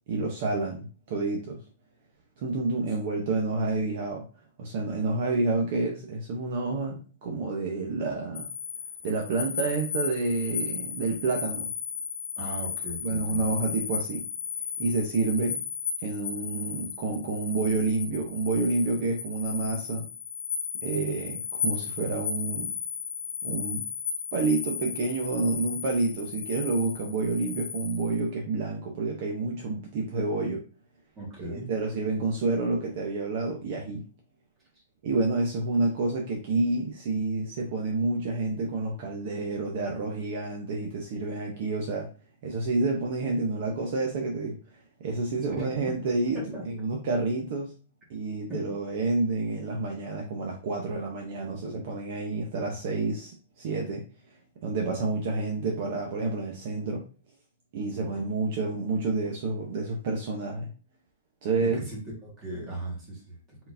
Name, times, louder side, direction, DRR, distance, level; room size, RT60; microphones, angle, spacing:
voice 1, 0.1-1.6 2.4-4.2 4.6-8.5 9.0-11.7 13.0-14.2 14.8-15.6 16.0-20.1 20.8-22.7 23.4-23.9 24.3-30.6 31.4-34.0 35.0-42.1 42.4-44.6 45.0-47.7 48.1-54.0 54.6-57.0 57.7-60.7 61.4-61.8, right 3 dB, 40° right, 0 dB, 0.8 m, -29 dB
sound 1, 8.3-28.2, left 6 dB, 75° left, 0.9 m, -35 dB
voice 2, 12.4-13.4 31.1-31.7 45.6-45.7 46.3-46.6 48.5-48.6 61.6-63.6, right 1 dB, 15° right, -4 dB, 1.7 m, -37 dB
4.6 x 3.9 x 2.7 m, 0.37 s
hypercardioid pair, 170°, 0 cm